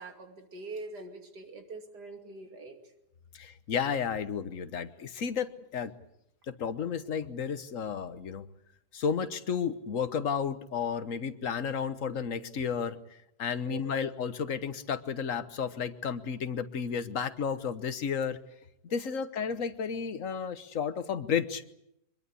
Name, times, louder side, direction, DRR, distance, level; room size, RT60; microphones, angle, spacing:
voice 1, 0.0-2.8 13.6-14.0 18.9-19.0, right 3 dB, 90° right, 5 dB, 3.1 m, -44 dB
voice 2, 3.3-5.9 6.5-8.4 8.9-13.0 13.4-18.4 18.9-21.7, left 6 dB, 55° left, 12 dB, 1.5 m, -32 dB
24.0 x 22.0 x 8.4 m, 0.80 s
omnidirectional pair, 1.7 m